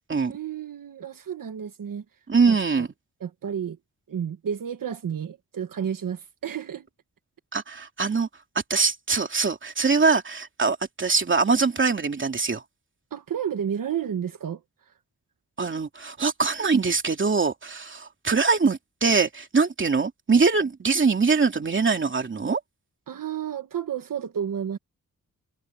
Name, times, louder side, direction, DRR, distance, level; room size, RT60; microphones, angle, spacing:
voice 1, 0.3-2.0 2.5-2.9 3.2-3.8 4.1-6.9 13.1-14.6 14.9-15.0 23.1-24.8, right 8 dB, 75° right, 1.3 m, -31 dB
voice 2, 2.3-2.9 7.5-8.3 8.7-12.6 15.6-22.6, right 4 dB, 35° right, 2.8 m, -23 dB
wide cardioid pair, 170°, 33 cm